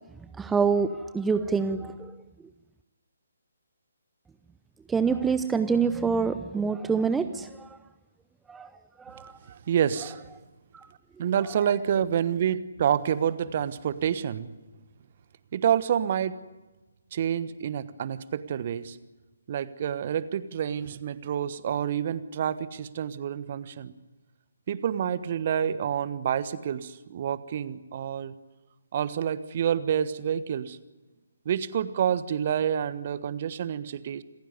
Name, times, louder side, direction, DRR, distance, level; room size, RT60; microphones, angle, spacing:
voice 1, 0.4-2.1 4.9-7.8 8.5-8.7 9.0-9.3 10.7-10.9, right 5 dB, 5° right, 10 dB, 0.7 m, -26 dB
voice 2, 9.5-10.2 11.2-14.5 15.5-16.4 17.1-19.0 19.5-23.9 24.7-28.3 28.9-30.8 31.4-34.2, right 9 dB, 40° right, 15 dB, 1.2 m, -28 dB
27.5 x 15.5 x 9.6 m, 1.2 s
figure-of-eight pair, 140°, 0 cm